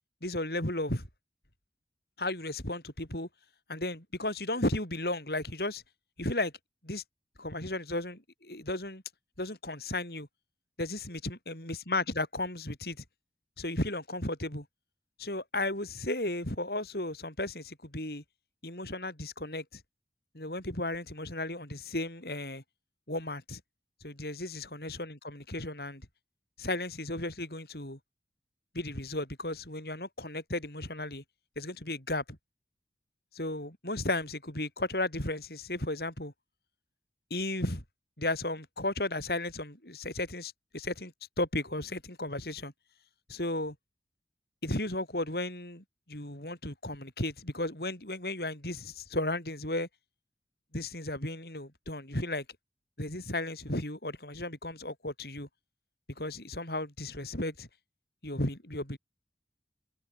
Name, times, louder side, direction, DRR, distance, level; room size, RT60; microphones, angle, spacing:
voice 1, 0.2-1.1 2.2-3.3 3.7-5.8 6.2-6.5 6.8-7.0 7.4-9.0 9.4-10.3 10.8-13.0 13.6-14.7 15.2-18.2 18.6-19.8 20.3-22.6 23.1-23.6 24.0-26.1 26.6-28.0 28.7-31.2 31.6-32.4 33.3-36.3 37.3-37.8 38.2-42.7 43.3-43.8 44.6-49.9 50.7-52.4 53.0-55.5 56.2-57.7 58.2-59.0, left 1 dB, 60° left, 6.2 m, -34 dB
head